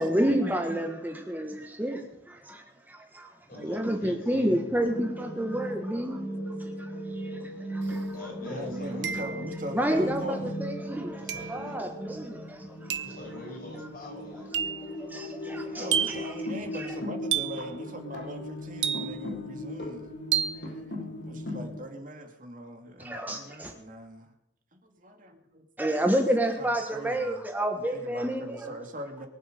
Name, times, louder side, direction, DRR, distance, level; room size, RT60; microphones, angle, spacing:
voice 1, 0.0-8.2 9.1-9.2 9.7-13.0 14.9-16.3 16.7-16.9 23.0-23.7 25.8-28.7, equal, 10° right, 3 dB, 1.4 m, -30 dB
voice 2, 3.5-4.6 8.1-9.2 11.2-11.8 13.0-14.5, equal, 55° left, -1 dB, 7.1 m, -42 dB
voice 3, 4.8-5.4 6.1-6.2 8.4-10.5 13.5-13.6 14.3-20.1 20.5-24.3 24.7-26.0 26.6-27.4 27.8-29.3, equal, 45° right, 5 dB, 2.3 m, -42 dB
sound 1, 4.9-21.7, equal, 70° left, 8.0 m, -38 dB
sound 2, 7.9-8.0 9.0-9.6 11.3-11.6 12.9-13.2 14.5-14.9 15.9-16.3 17.3-17.7 18.8-19.4 20.3-20.7, right 9 dB, 70° right, 0.9 m, -30 dB
23.0 x 7.8 x 6.7 m, 0.80 s
head